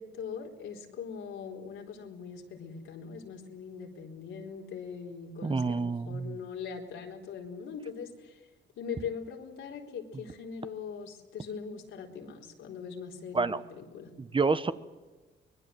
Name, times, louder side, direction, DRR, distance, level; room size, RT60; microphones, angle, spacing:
voice 1, 0.0-8.4 8.8-14.1, left 6 dB, 80° left, 1 dB, 4.3 m, -41 dB
voice 2, 5.4-6.4 13.3-13.6 14.2-14.7, right 4 dB, 25° right, 12 dB, 1.1 m, -28 dB
24.5 x 20.0 x 7.9 m, 1.3 s
cardioid pair, 90°, 20 cm